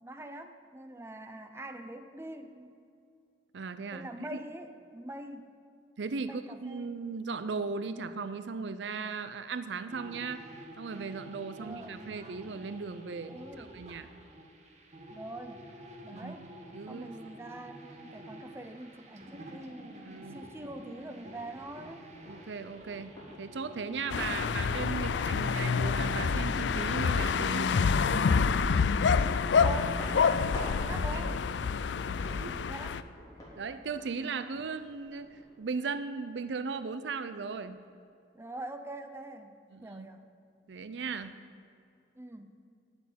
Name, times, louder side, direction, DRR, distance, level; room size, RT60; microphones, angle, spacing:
voice 1, 0.0-2.8 3.9-5.5 6.2-6.9 11.6-12.0 13.3-13.7 15.1-15.7 16.0-16.4 16.9-22.0 24.2-25.3 29.1-30.5 30.8-33.0 38.3-39.5 39.8-40.3 42.1-42.5, right 1 dB, 15° right, 8 dB, 0.6 m, -44 dB
voice 2, 3.5-4.4 6.0-10.4 10.8-14.1 16.1-17.1 20.0-20.5 22.3-27.7 30.9-31.4 32.2-32.7 33.6-37.8 39.7-40.1 40.7-41.4, right 4 dB, 75° right, 12 dB, 0.5 m, -37 dB
sound 1, 9.9-28.5, right 1 dB, 40° right, 1.5 m, -50 dB
sound 2, 20.6-35.5, equal, 20° left, 3.6 m, -50 dB
sound 3, 24.1-33.0, left 5 dB, 75° left, 0.4 m, -27 dB
9.5 x 8.0 x 9.4 m, 2.4 s
head